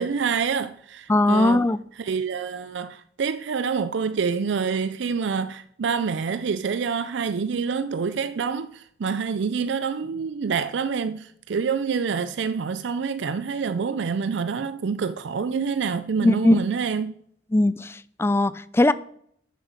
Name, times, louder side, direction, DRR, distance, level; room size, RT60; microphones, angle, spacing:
voice 1, 0.0-1.6 2.0-17.2, right 5 dB, 70° right, 0.4 m, -27 dB
voice 2, 1.1-1.8 16.2-16.6 17.5-18.9, left 2 dB, 15° left, 0.3 m, -20 dB
9.1 x 7.4 x 6.6 m
head